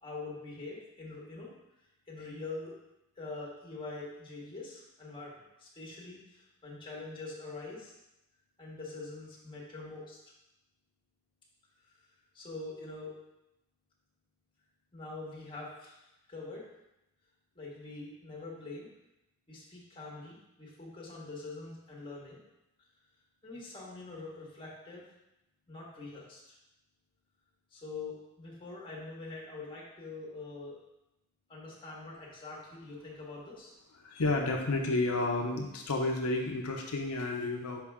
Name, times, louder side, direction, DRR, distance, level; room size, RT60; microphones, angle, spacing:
voice 1, 0.0-1.5 2.1-2.7 3.1-8.0 8.6-10.2 12.3-13.1 14.9-16.7 17.5-18.9 19.5-22.4 23.4-25.0 25.7-26.6 27.7-30.8 31.5-33.7, left 3 dB, 25° left, -5 dB, 1.6 m, -44 dB
voice 2, 34.0-37.8, left 2 dB, 85° left, 1 dB, 0.8 m, -31 dB
5.7 x 4.9 x 3.6 m, 0.91 s
head